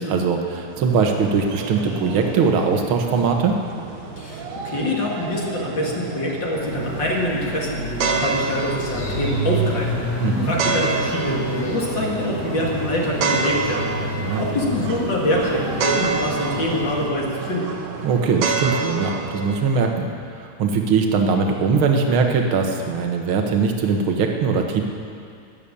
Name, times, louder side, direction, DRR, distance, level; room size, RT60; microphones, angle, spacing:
voice 1, 0.0-3.6 10.2-10.5 14.2-14.5 18.0-20.1 20.4-24.8, right 5 dB, 55° right, 3 dB, 1.8 m, -21 dB
sound 1, 0.6-19.6, right 4 dB, 85° right, 2.8 m, -29 dB
voice 2, 4.2-9.9 10.4-13.9 14.4-17.7, left 1 dB, 40° left, -2 dB, 2.5 m, -25 dB
sound 2, 6.6-17.0, equal, 75° left, 5.1 m, -29 dB
13.5 x 11.5 x 8.6 m, 2.4 s
omnidirectional pair, 3.5 m